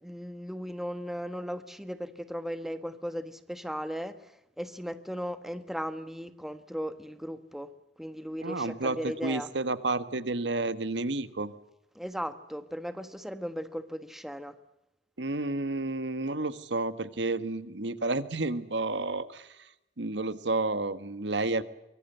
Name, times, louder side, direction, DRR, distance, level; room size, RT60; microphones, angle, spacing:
voice 1, 0.0-7.7 8.0-9.5 11.9-14.6, equal, ahead, 10 dB, 1.3 m, -37 dB
voice 2, 8.4-11.5 15.2-21.6, right 2 dB, 85° right, 12 dB, 1.5 m, -31 dB
24.0 x 22.5 x 8.0 m, 0.89 s
head